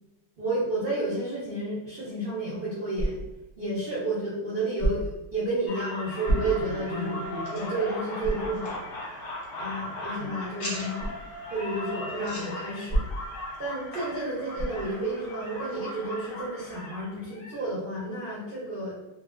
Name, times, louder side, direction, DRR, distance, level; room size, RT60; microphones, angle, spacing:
voice 1, 0.4-3.2 3.6-8.8 9.6-11.2 11.5-13.1 13.6-19.0, right 2 dB, 65° right, -8 dB, 0.5 m, -31 dB
sound 1, 2.9-3.5 4.8-5.3 6.2-6.9 7.4-7.5 8.2-8.6 11.0-11.2 12.9-13.4 14.5-14.9, right 1 dB, 30° left, 0.5 m, -29 dB
sound 2, 5.7-17.6, left 1 dB, 75° left, 1.2 m, -38 dB
sound 3, 6.2-16.0, left 1 dB, 60° left, 1.3 m, -46 dB
3.1 x 2.2 x 2.5 m, 0.97 s
omnidirectional pair, 2.1 m